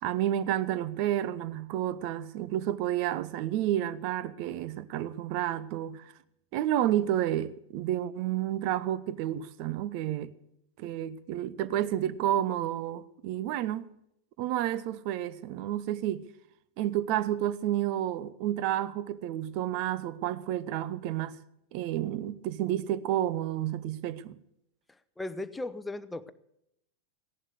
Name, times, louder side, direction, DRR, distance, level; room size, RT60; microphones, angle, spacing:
voice 1, 0.0-6.1 6.5-10.3 10.8-13.9 14.4-16.2 16.8-21.4 21.7-24.4, right 12 dB, 45° right, 0.9 m, -30 dB
voice 2, 25.2-26.3, left 2 dB, 10° left, 0.9 m, -36 dB
16.5 x 11.0 x 6.5 m
figure-of-eight pair, 90°, 0 cm